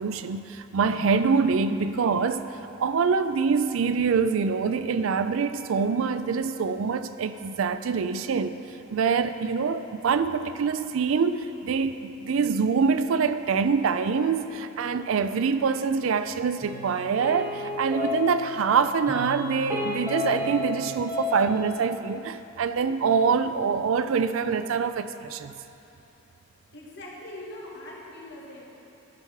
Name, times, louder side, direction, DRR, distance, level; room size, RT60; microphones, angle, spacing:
voice 1, 0.0-2.5 2.8-8.5 8.9-25.5, right 5 dB, 70° right, 11 dB, 0.4 m, -25 dB
sound 1, 16.6-18.7 19.1-20.8 21.1-21.7, left 3 dB, 15° right, 2.3 m, -32 dB
voice 2, 26.7-28.8, left 1 dB, 55° left, -4 dB, 1.8 m, -42 dB
14.0 x 4.7 x 5.7 m, 2.9 s
head